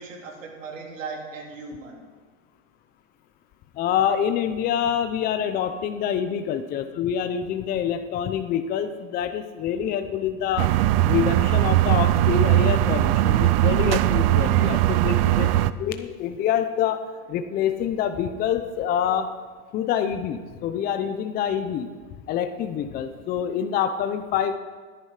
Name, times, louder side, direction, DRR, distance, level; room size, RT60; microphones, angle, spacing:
voice 1, 0.0-2.0, right 4 dB, 75° right, 0 dB, 3.8 m, -37 dB
voice 2, 3.8-10.7 11.1-15.5 15.8-17.0 17.3-19.3 19.7-21.9 22.3-24.5, left 9 dB, 25° left, 9 dB, 0.7 m, -26 dB
sound 1, 10.6-15.7, right 14 dB, 50° right, 0.6 m, -20 dB
16.0 x 10.0 x 4.9 m, 1.5 s
hypercardioid pair, 135°, 38 cm